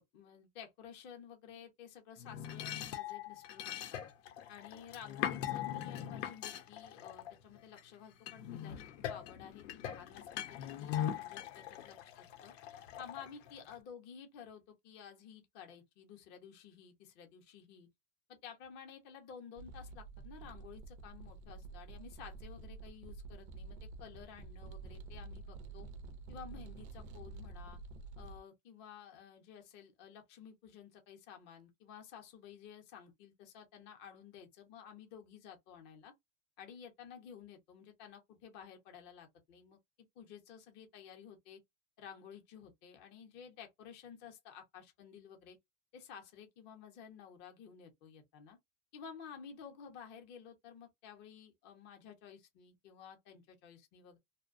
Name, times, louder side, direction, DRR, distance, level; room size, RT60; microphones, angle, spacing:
voice 1, 0.0-4.0 4.5-12.5 13.0-17.9 18.3-25.9 26.3-27.8 28.2-36.1 36.6-39.8 40.2-41.6 42.0-45.6 45.9-48.6 48.9-54.2, left 7 dB, 30° left, 0.6 m, -53 dB
sound 1, 2.2-7.8 8.3-13.8, left 10 dB, 90° left, 0.7 m, -41 dB
sound 2, 19.6-28.4, right 3 dB, 40° right, 0.4 m, -49 dB
2.6 x 2.1 x 2.5 m
supercardioid pair, 180°, 36 cm